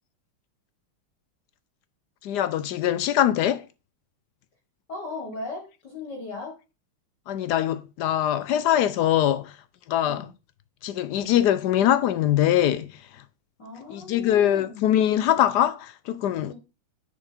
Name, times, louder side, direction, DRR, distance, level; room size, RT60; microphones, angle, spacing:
voice 1, 2.2-3.6 7.3-9.5 9.9-10.3 10.8-12.9 13.9-16.5, left 11 dB, 75° left, 1.0 m, -22 dB
voice 2, 4.9-6.5 10.0-10.3 13.6-14.8 16.5-16.6, left 3 dB, 55° left, 2.2 m, -37 dB
10.0 x 4.7 x 4.4 m
omnidirectional pair, 2.2 m